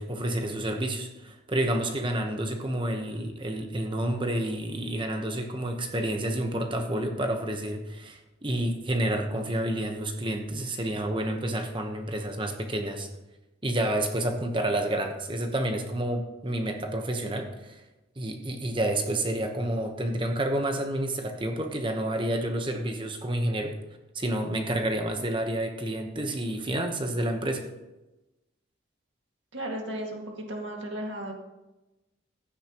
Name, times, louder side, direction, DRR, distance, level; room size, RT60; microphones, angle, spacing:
voice 1, 0.0-13.1 13.6-17.8 18.2-23.7 24.1-27.6, right 1 dB, 25° right, 4 dB, 1.0 m, -29 dB
voice 2, 29.5-31.3, right 1 dB, 60° right, 1 dB, 2.0 m, -35 dB
16.0 x 9.8 x 3.0 m, 1.0 s
head